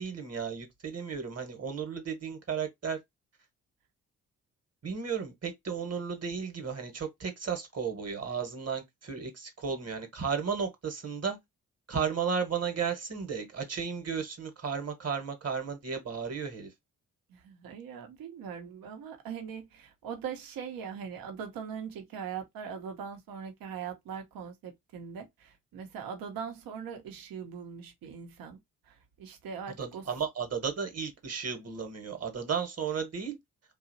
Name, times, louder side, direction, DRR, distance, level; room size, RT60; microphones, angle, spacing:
voice 1, 0.0-3.0 4.8-11.4 11.9-16.7 29.8-33.4, right 6 dB, 45° right, 1.1 m, -34 dB
voice 2, 17.3-28.6 28.8-30.1, right 7 dB, 70° right, 0.8 m, -41 dB
2.8 x 2.4 x 2.6 m
hypercardioid pair, 45°, 36 cm